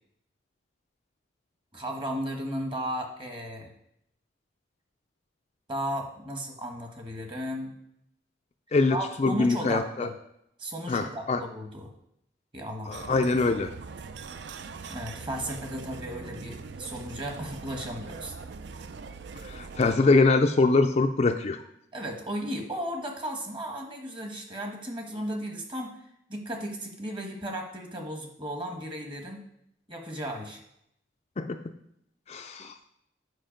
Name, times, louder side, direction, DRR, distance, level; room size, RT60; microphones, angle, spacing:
voice 1, 1.7-3.7 5.7-7.8 8.9-10.1 10.6-11.9 12.5-13.0 14.9-18.3 21.9-26.0 26.3-29.4 29.9-30.6, equal, 25° right, 3 dB, 1.2 m, -35 dB
voice 2, 8.7-10.1 10.9-11.4 12.9-13.7 19.4-21.6 31.4-31.6 32.3-32.7, left 3 dB, 35° left, 6 dB, 0.4 m, -23 dB
sound 1, 12.9-20.0, right 4 dB, 60° right, 0.4 m, -42 dB
7.8 x 5.3 x 5.1 m, 0.77 s
head